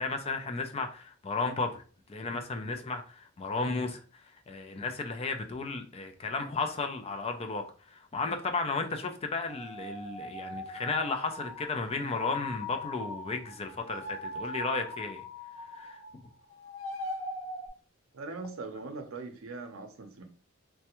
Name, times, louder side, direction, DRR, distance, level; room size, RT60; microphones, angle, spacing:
voice 1, 0.0-1.8 2.1-15.2 15.7-16.0, left 3 dB, 30° left, 0.4 m, -34 dB
sound 1, 9.5-16.3 16.5-17.7, left 2 dB, 75° left, 0.7 m, -40 dB
voice 2, 18.1-20.2, right 3 dB, 75° right, 0.6 m, -41 dB
3.3 x 2.2 x 2.9 m
head